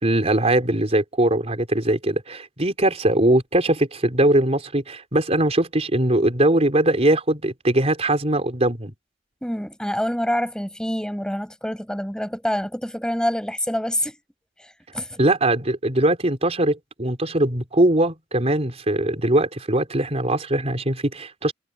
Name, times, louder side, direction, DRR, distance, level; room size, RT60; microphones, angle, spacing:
voice 1, 0.0-8.9 15.2-21.5, right 1 dB, 35° right, 4.0 m, -21 dB
voice 2, 9.4-14.2 14.6-15.2, equal, 5° left, 6.7 m, -26 dB
head